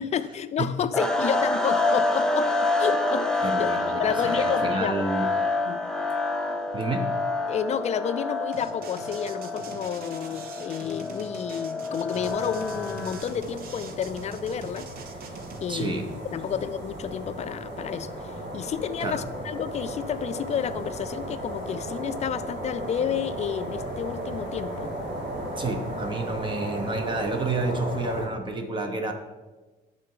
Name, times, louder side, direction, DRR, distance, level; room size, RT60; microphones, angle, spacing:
voice 1, 0.0-2.5 2.8-5.1 5.6-5.8 7.5-14.9 15.6-15.9 16.3-24.9, left 8 dB, 40° left, 13 dB, 0.5 m, -30 dB
sound 1, 0.9-13.3, left 2 dB, 5° left, 0.7 m, -27 dB
voice 2, 3.4-5.3 6.7-7.1 15.7-16.1 16.4-16.5 19.0-19.2 25.6-29.1, right 2 dB, 30° right, 5 dB, 1.0 m, -30 dB
sound 2, 8.5-15.6, right 5 dB, 65° right, 1.0 m, -44 dB
sound 3, 12.2-28.3, right 1 dB, 80° right, 2.5 m, -35 dB
12.0 x 4.1 x 4.7 m, 1.2 s
cardioid pair, 110°, 17 cm